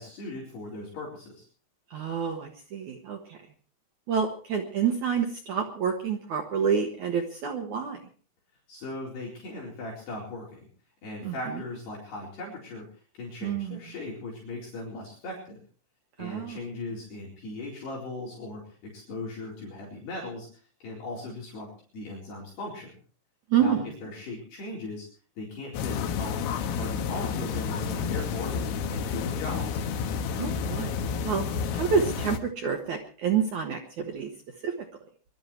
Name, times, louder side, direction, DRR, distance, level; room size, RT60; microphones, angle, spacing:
voice 1, 0.0-1.4 8.7-10.7 11.0-12.9 13.1-15.6 16.2-20.5 20.8-22.9 23.6-23.8 24.0-25.1 25.4-29.8, left 2 dB, 55° left, -4 dB, 6.2 m, -38 dB
voice 2, 1.9-3.4 4.1-8.0 11.2-11.3 13.4-13.8 16.2-16.6 23.5-23.9 30.4-31.0 31.2-31.4 31.7-34.3 34.6-34.7, right 7 dB, 90° right, 3 dB, 1.6 m, -28 dB
sound 1, 25.7-32.4, left 6 dB, 85° left, 4.0 m, -30 dB
23.5 x 12.5 x 4.5 m, 0.42 s
omnidirectional pair, 5.7 m